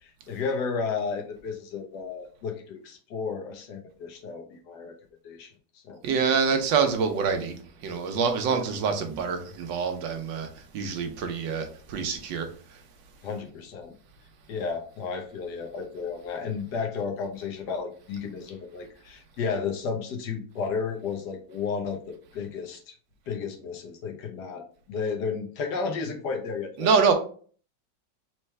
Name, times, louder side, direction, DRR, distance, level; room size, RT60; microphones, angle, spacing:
voice 1, 0.0-4.9 5.2-5.5 5.8-6.0 13.2-13.9 14.5-22.9 23.3-26.9, left 5 dB, 65° left, 1.4 m, -33 dB
voice 2, 6.0-7.5 7.8-10.5 10.7-12.5 26.8-27.1, right 5 dB, 85° right, 1.5 m, -25 dB
4.4 x 3.3 x 3.2 m
omnidirectional pair, 2.0 m